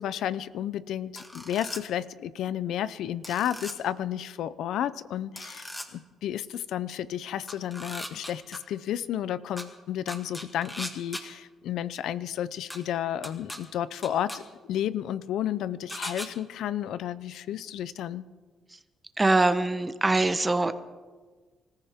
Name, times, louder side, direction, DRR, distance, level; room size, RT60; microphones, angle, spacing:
voice 1, 0.0-18.2, left 11 dB, 80° left, 16 dB, 0.6 m, -32 dB
sound 1, 1.2-1.8 3.2-3.7 5.4-5.9 7.5-8.6 9.6-9.7 10.1-11.2 12.7-12.8 13.2-13.6 14.0-14.4 15.9-16.3, left 1 dB, 10° left, 2.1 m, -38 dB
voice 2, 19.2-20.7, right 2 dB, 20° right, 10 dB, 1.2 m, -23 dB
26.0 x 14.5 x 3.7 m, 1.4 s
cardioid pair, 90°, 0 cm